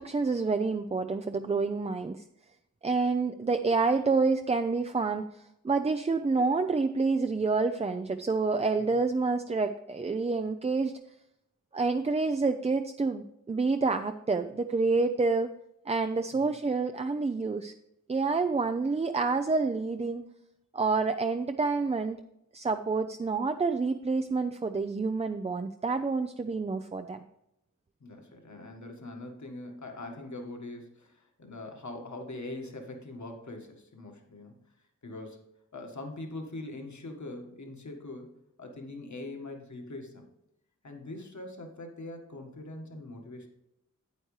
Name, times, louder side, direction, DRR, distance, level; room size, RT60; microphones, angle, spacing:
voice 1, 0.0-2.2 2.8-10.9 11.7-15.5 15.9-17.7 18.1-20.2 20.7-22.2 22.5-27.2, right 4 dB, 20° right, 8 dB, 0.3 m, -28 dB
voice 2, 28.0-34.6 35.0-35.4 35.7-38.3 38.6-40.2 40.8-43.5, left 2 dB, 60° left, 3 dB, 1.6 m, -42 dB
9.1 x 8.7 x 3.2 m, 0.83 s
wide cardioid pair, 85°, 33 cm